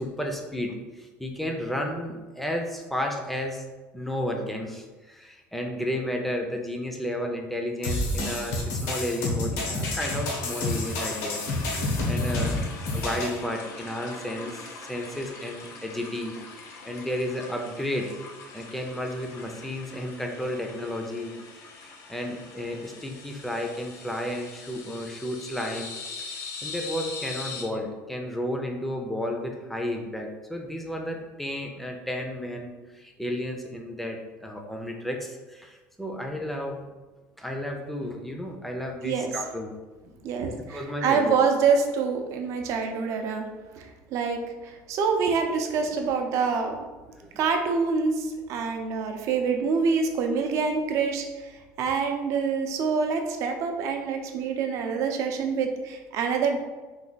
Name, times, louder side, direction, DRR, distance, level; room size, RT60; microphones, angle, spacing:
voice 1, 0.0-3.6 3.9-12.6 12.9-16.4 16.9-18.1 18.5-21.3 21.8-25.9 26.2-36.9 37.4-39.7 40.0-40.1 40.7-41.4 47.2-47.4, left 1 dB, 5° left, 2 dB, 0.4 m, -32 dB
sound 1, 7.8-13.4, left 2 dB, 85° left, 0.9 m, -29 dB
sound 2, 10.0-27.6, left 4 dB, 55° left, 0.6 m, -42 dB
voice 2, 40.2-43.5 43.8-46.8 47.4-51.3 51.8-56.6, right 5 dB, 60° right, 4 dB, 0.5 m, -26 dB
3.2 x 2.2 x 3.9 m, 1.2 s
cardioid pair, 135°, 6 cm